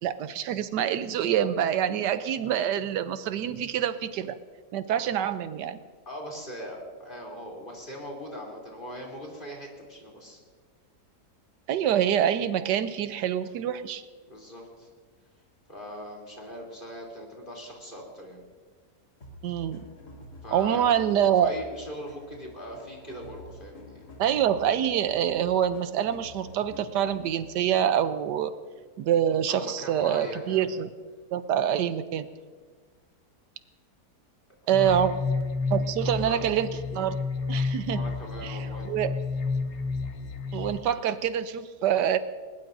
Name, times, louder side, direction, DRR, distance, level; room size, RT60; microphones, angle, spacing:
voice 1, 0.0-4.4 4.7-5.8 11.7-14.0 19.4-19.8 20.5-21.5 24.2-28.5 29.0-30.9 31.3-32.3 34.7-35.1 35.7-37.2 37.5-38.0 38.4-38.6 38.8-39.1 40.5-42.2, right 9 dB, 85° right, 12 dB, 1.3 m, -26 dB
voice 2, 6.1-10.4 14.3-14.9 15.7-18.4 20.4-20.8 21.2-24.0 29.5-30.7 34.8-35.0 36.0-36.5 37.9-39.0, equal, 30° left, -1 dB, 3.5 m, -40 dB
sound 1, 19.2-27.6, left 1 dB, 70° left, 3.2 m, -48 dB
sound 2, 34.7-40.8, left 4 dB, 50° left, 1.1 m, -30 dB
21.0 x 20.5 x 2.6 m, 1.5 s
omnidirectional pair, 1.8 m